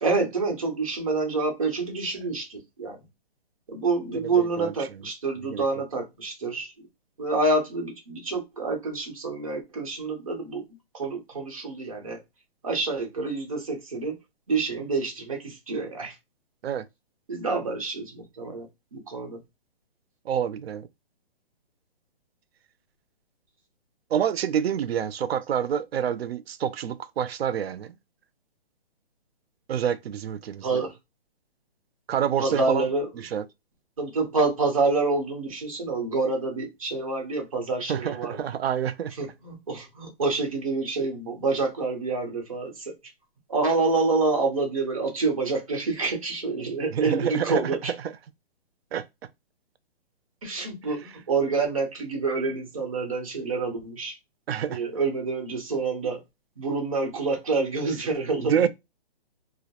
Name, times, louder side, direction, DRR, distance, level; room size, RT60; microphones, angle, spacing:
voice 1, 0.0-3.0 3.7-6.7 7.2-10.6 10.9-12.2 12.6-14.1 14.5-16.1 17.3-18.7 18.9-19.4 30.6-30.9 32.4-33.2 34.0-38.4 39.1-42.9 43.5-47.9 50.4-54.1 54.7-56.2 56.6-58.7, right 3 dB, 35° right, 0.7 m, -27 dB
voice 2, 4.1-5.0 5.5-5.7 16.6-16.8 20.3-20.9 24.1-27.9 29.7-30.8 32.1-32.9 33.3-33.4 37.9-39.1 46.9-47.6 48.9-49.0 54.5-54.8 58.5-58.7, right 9 dB, 80° right, 0.5 m, -27 dB
2.2 x 2.0 x 2.8 m
hypercardioid pair, 180°, 30 cm